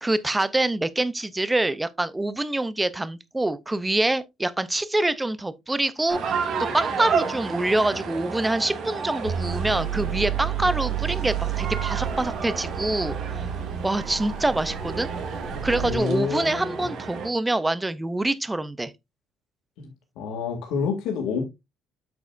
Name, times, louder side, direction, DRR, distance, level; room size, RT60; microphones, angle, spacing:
voice 1, 0.0-6.2 6.6-13.1 13.8-15.1 15.6-18.9, right 2 dB, 10° right, 0.5 m, -25 dB
sound 1, 6.1-17.3, right 5 dB, 45° right, 2.1 m, -32 dB
sound 2, 9.2-16.0, right 9 dB, 70° right, 2.0 m, -30 dB
voice 2, 15.7-16.9 19.8-21.4, left 5 dB, 75° left, 2.2 m, -29 dB
8.1 x 7.2 x 2.5 m
cardioid pair, 175°, 0 cm